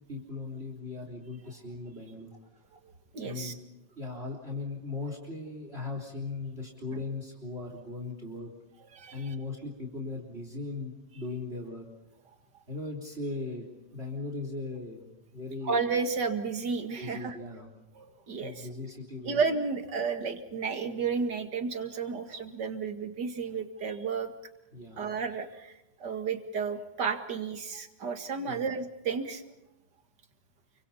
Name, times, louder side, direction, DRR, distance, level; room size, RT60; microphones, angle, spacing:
voice 1, 0.1-2.4 3.2-3.6 4.0-8.5 9.1-11.9 12.7-15.8 17.0-17.7 18.4-19.4 24.7-25.1 28.4-28.7, left 3 dB, 35° right, 2 dB, 3.9 m, -38 dB
voice 2, 2.8-3.6 9.0-9.2 15.7-17.4 18.0-18.7 19.2-24.3 25.0-29.4, right 5 dB, 75° right, 7 dB, 2.7 m, -32 dB
29.0 x 24.5 x 5.7 m, 0.95 s
omnidirectional pair, 1.8 m